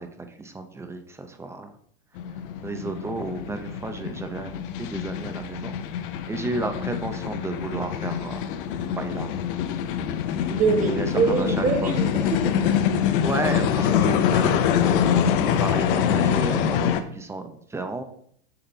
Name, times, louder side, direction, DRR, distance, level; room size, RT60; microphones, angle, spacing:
voice 1, 0.0-1.7 2.6-8.5 8.8-9.3 10.8-11.7 13.2-18.0, right 2 dB, 10° right, 7 dB, 0.7 m, -33 dB
sound 1, 2.2-17.0, left 8 dB, 60° left, 0.8 m, -25 dB
voice 2, 10.5-12.6, right 5 dB, 25° right, 5 dB, 1.1 m, -24 dB
6.8 x 3.7 x 4.4 m, 0.66 s
hypercardioid pair, 120°, 30 cm